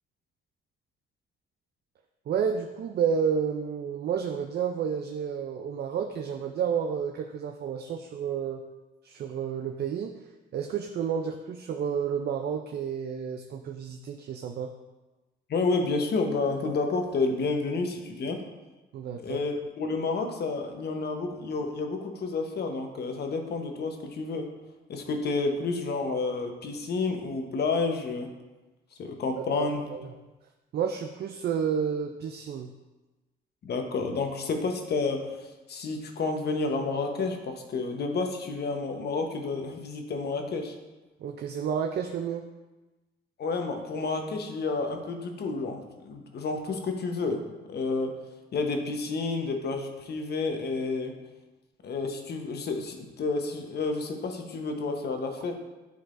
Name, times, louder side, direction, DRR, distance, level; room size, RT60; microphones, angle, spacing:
voice 1, 2.3-8.6 9.0-10.1 10.5-14.7 18.9-19.4 29.5-30.1 30.7-32.7 41.2-42.5, right 7 dB, 55° right, 4 dB, 0.4 m, -30 dB
voice 2, 15.5-18.4 19.2-24.5 24.9-28.3 29.0-29.9 33.6-40.8 43.4-47.4 47.7-48.1 48.5-51.1 51.8-55.5, left 3 dB, 55° left, 4 dB, 0.9 m, -30 dB
10.5 x 3.9 x 2.5 m, 1.1 s
cardioid pair, 90°, 20 cm